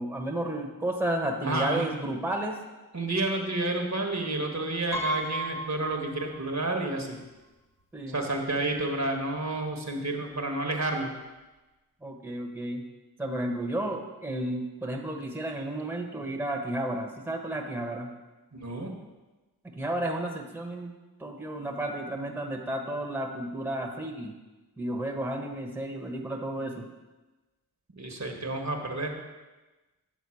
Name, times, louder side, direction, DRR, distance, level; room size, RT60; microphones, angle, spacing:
voice 1, 0.0-2.6 7.9-8.2 12.0-12.8 13.2-18.1 19.6-20.9 21.2-24.3 24.8-26.9, right 1 dB, 5° right, 2 dB, 1.1 m, -32 dB
voice 2, 1.4-1.9 2.9-7.2 8.1-11.1 18.5-18.9 28.0-29.2, right 2 dB, 45° right, 3 dB, 1.2 m, -30 dB
Piano, 4.9-6.7 7.1-7.2 8.3-8.4 8.7-9.0, right 1 dB, 65° left, 1.2 m, -34 dB
8.5 x 3.9 x 6.3 m, 1.1 s
cardioid pair, 40°, 38 cm